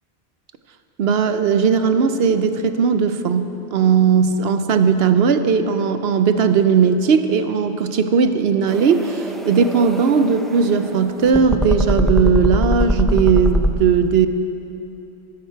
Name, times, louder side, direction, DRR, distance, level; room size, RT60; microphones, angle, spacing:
voice 1, 1.0-14.3, right 6 dB, 75° right, 9 dB, 0.9 m, -17 dB
sound 1, 8.7-13.7, equal, ahead, 0.4 m, -22 dB
14.5 x 12.5 x 4.6 m, 2.9 s
omnidirectional pair, 1.0 m